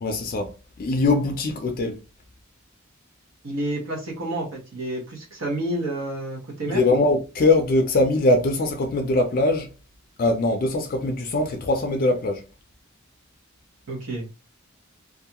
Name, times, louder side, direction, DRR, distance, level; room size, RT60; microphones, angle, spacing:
voice 1, 0.0-2.0 6.7-9.7 10.2-12.5, left 2 dB, 45° left, 0.4 m, -22 dB
voice 2, 3.4-6.8 13.9-14.3, right 1 dB, 70° right, 0.8 m, -29 dB
2.4 x 2.3 x 2.8 m
head